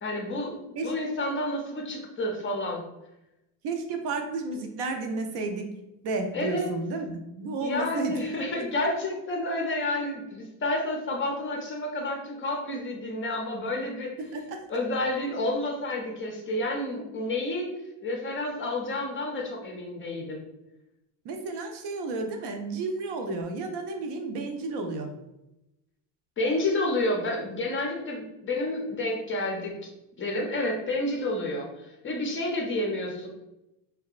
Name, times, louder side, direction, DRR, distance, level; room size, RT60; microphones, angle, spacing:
voice 1, 0.0-0.6 0.8-2.8 6.3-6.7 7.6-14.1 14.7-17.7 18.0-20.4 26.4-29.9 30.2-33.3, left 1 dB, 25° left, 0 dB, 0.4 m, -30 dB
voice 2, 3.6-5.7 6.0-8.1 8.6-8.7 14.2-14.6 21.2-25.1, right 3 dB, 60° right, 4 dB, 0.6 m, -32 dB
2.7 x 2.2 x 2.3 m, 0.92 s
supercardioid pair, 110°, 47 cm